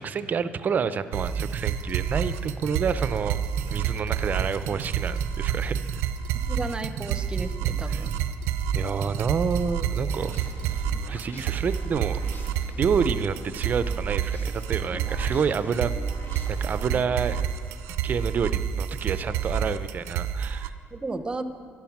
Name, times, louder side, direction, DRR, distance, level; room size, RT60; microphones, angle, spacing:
voice 1, 0.0-3.4 3.7-5.8 7.9-8.0 8.8-10.3 10.7-12.2 12.8-15.9 16.5-17.4 18.0-20.7, right 6 dB, 40° right, 14 dB, 0.6 m, -28 dB
sound 1, 1.1-20.7, right 8 dB, 90° right, 0.6 m, -29 dB
voice 2, 6.5-8.1 20.9-21.4, right 3 dB, 20° right, 10 dB, 0.9 m, -33 dB
sound 2, 9.4-17.4, left 2 dB, 50° left, 1.6 m, -45 dB
12.0 x 11.5 x 6.0 m, 2.2 s
cardioid pair, 95°, 4 cm